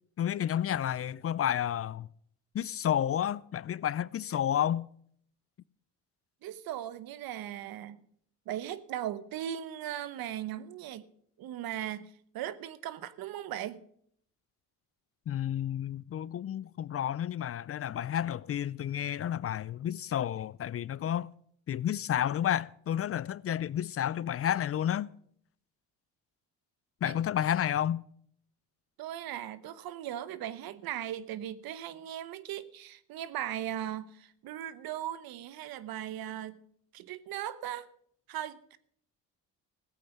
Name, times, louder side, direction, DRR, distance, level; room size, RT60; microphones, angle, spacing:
voice 1, 0.2-2.1 2.5-4.9 15.3-21.3 21.7-25.1 27.0-28.0, left 10 dB, 40° left, 0.4 m, -31 dB
voice 2, 6.4-8.0 8.5-11.1 11.4-13.8 27.0-27.2 29.0-36.6 36.9-37.9 38.3-38.8, right 11 dB, 80° right, 1.0 m, -38 dB
15.5 x 8.6 x 5.9 m
cardioid pair, 80°, 36 cm